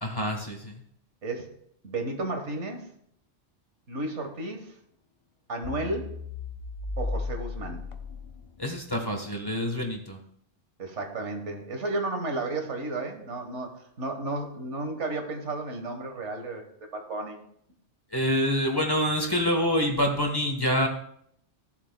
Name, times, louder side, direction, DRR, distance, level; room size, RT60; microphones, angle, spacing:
voice 1, 0.0-0.7 8.6-10.2 18.1-20.9, equal, 20° left, 2 dB, 1.1 m, -26 dB
voice 2, 1.8-2.8 3.9-4.7 5.5-6.1 7.0-7.9 10.8-16.7 16.9-17.4, right 2 dB, 80° right, 4 dB, 1.7 m, -33 dB
sound 1, 5.6-8.8, left 3 dB, 55° left, 0.3 m, -35 dB
15.0 x 7.4 x 2.2 m, 0.69 s
omnidirectional pair, 1.2 m